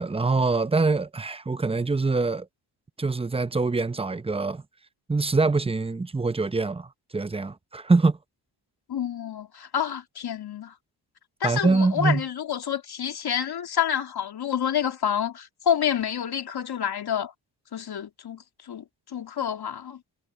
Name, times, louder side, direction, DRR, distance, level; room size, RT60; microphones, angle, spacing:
voice 1, 0.0-2.5 3.0-4.6 5.1-8.2 11.4-12.2, right 3 dB, 15° right, 0.8 m, -24 dB
voice 2, 8.9-10.7 11.4-17.3 17.7-18.8 19.1-20.0, left 9 dB, 60° left, 2.6 m, -28 dB
cardioid pair, 80°, 44 cm